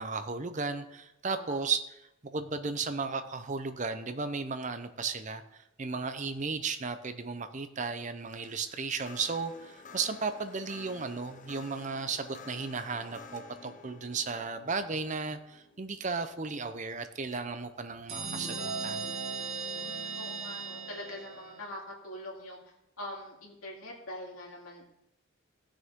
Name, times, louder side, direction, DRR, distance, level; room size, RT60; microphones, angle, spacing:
voice 1, 0.0-19.0, right 4 dB, 35° right, 10 dB, 0.6 m, -35 dB
voice 2, 1.2-1.6 19.7-22.6 23.0-25.0, left 1 dB, 75° left, -3 dB, 3.0 m, -43 dB
sound 1, 8.1-17.5, left 4 dB, 35° left, 0.7 m, -52 dB
sound 2, 18.1-21.6, right 4 dB, 75° right, 1.7 m, -37 dB
18.0 x 6.3 x 3.7 m, 0.87 s
head